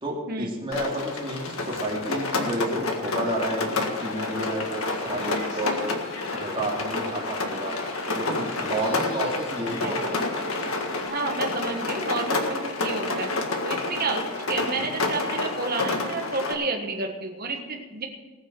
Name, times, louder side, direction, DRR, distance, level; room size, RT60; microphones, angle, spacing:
voice 1, 0.0-6.0 6.3-7.7 8.1-10.2 14.6-14.9, right 1 dB, 25° right, -3 dB, 2.8 m, -31 dB
Rain, 0.7-16.5, left 2 dB, 80° left, 1.7 m, -29 dB
sound 1, 3.7-11.1, left 2 dB, 60° left, 2.1 m, -41 dB
voice 2, 11.0-13.3 13.6-18.1, right 3 dB, 45° right, 1 dB, 1.5 m, -30 dB
19.0 x 6.5 x 6.2 m, 1.2 s
head